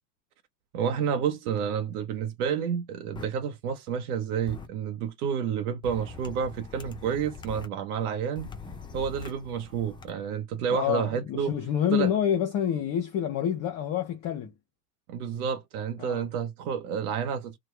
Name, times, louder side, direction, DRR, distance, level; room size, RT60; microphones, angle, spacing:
voice 1, 0.7-8.5 8.9-11.5 11.9-12.1 15.1-17.6, right 7 dB, 65° right, 0.8 m, -30 dB
sound 1, 3.1-3.2 4.5-4.7 5.8-7.7 8.3-10.1, left 4 dB, 10° left, 0.4 m, -42 dB
voice 2, 10.7-14.5 16.0-16.2, left 9 dB, 40° left, 0.8 m, -27 dB
3.0 x 2.2 x 3.1 m
hypercardioid pair, 90°, 48 cm